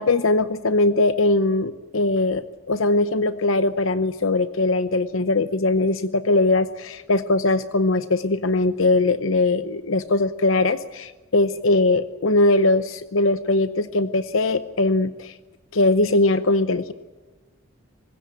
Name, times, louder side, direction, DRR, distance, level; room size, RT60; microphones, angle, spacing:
voice 1, 0.0-15.3 15.7-16.9, left 2 dB, 65° left, 13 dB, 0.8 m, -21 dB
25.0 x 20.5 x 8.9 m, 1.3 s
head